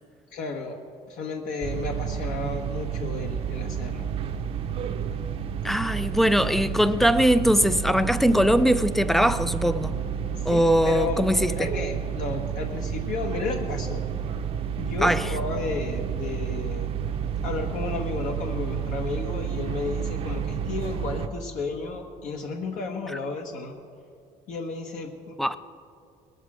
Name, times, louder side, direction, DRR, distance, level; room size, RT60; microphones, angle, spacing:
voice 1, 0.3-0.8 1.1-4.1 6.1-6.3 10.5-14.1 14.8-16.9 17.4-23.7 24.5-25.3, left 3 dB, 70° left, 1.3 m, -33 dB
sound 1, 1.6-21.3, right 8 dB, 45° right, 0.7 m, -30 dB
voice 2, 5.6-10.0 10.4-11.5 15.0-15.3 25.4-25.6, equal, ahead, 0.4 m, -21 dB
20.0 x 8.2 x 6.1 m
cardioid pair, 155°, 14 cm